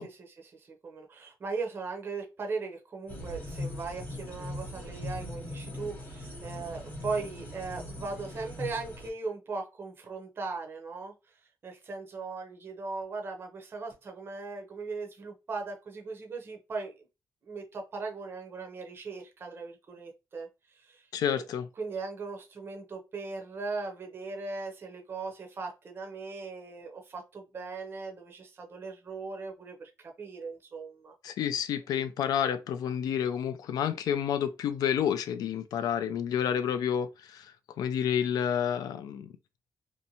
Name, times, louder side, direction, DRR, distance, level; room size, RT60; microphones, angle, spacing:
voice 1, 0.0-11.1 11.6-17.0 17.4-21.1 21.3-21.4 21.8-31.1, right 4 dB, 35° right, 0.6 m, -38 dB
sound 1, 3.1-9.1, left 1 dB, 25° left, 0.7 m, -40 dB
voice 2, 21.1-21.7 31.2-37.5 37.8-39.3, left 8 dB, 80° left, 0.3 m, -29 dB
2.6 x 2.1 x 2.7 m
cardioid pair, 145°, 6 cm